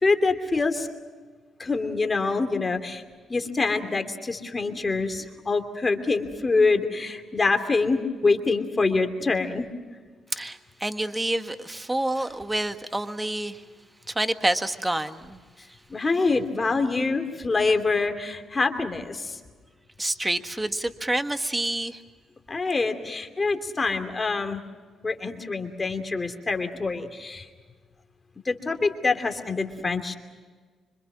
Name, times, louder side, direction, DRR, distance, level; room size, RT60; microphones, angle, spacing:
voice 1, 0.0-0.9 1.6-3.0 3.3-9.7 15.9-19.4 22.5-24.6 25.0-27.5 28.5-30.1, left 3 dB, 25° left, 6 dB, 2.7 m, -25 dB
voice 2, 10.4-13.6 14.1-15.4 20.0-22.0, right 1 dB, 15° right, 8 dB, 1.6 m, -28 dB
26.0 x 25.5 x 6.2 m, 1.5 s
cardioid pair, 90°, 0 cm